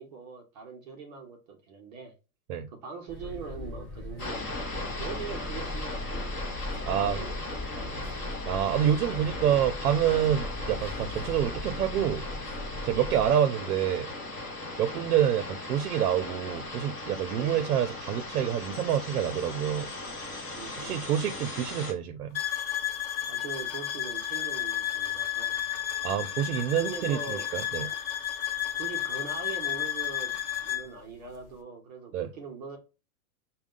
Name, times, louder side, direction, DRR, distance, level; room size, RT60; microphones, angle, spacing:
voice 1, 0.0-2.1 2.7-4.5 5.0-6.5 6.7-8.0 9.1-9.6 12.9-13.1 14.8-15.0 17.3-17.6 20.5-21.0 23.3-25.6 26.8-27.5 27.8-27.9 28.8-30.3 30.6-32.8, right 5 dB, 30° right, 0.6 m, -42 dB
sound 1, 3.1-13.3, left 2 dB, ahead, 1.7 m, -39 dB
sound 2, 4.2-21.9, left 2 dB, 15° left, 0.7 m, -38 dB
voice 2, 6.9-7.2 8.5-12.2 12.8-14.1 14.8-19.9 20.8-22.4 26.0-27.9 32.1-32.3, right 10 dB, 80° right, 0.7 m, -27 dB
sound 3, 22.3-30.9, left 11 dB, 40° left, 1.0 m, -32 dB
6.3 x 2.3 x 3.6 m
supercardioid pair, 170°, 44 cm